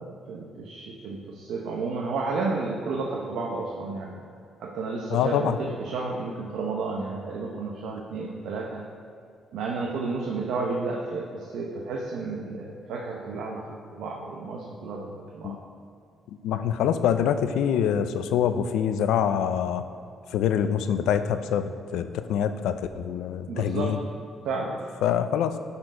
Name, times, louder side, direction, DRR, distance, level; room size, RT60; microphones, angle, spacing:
voice 1, 0.0-4.2 4.6-8.8 9.5-15.6 23.5-23.9 24.4-24.8, right 3 dB, 80° right, -1 dB, 0.8 m, -32 dB
voice 2, 5.1-5.6 15.4-15.6 16.4-19.9 20.3-21.6 21.9-24.0 25.0-25.6, left 9 dB, 90° left, 10 dB, 0.4 m, -25 dB
10.5 x 4.4 x 5.0 m, 2.4 s
cardioid pair, 90°, 0 cm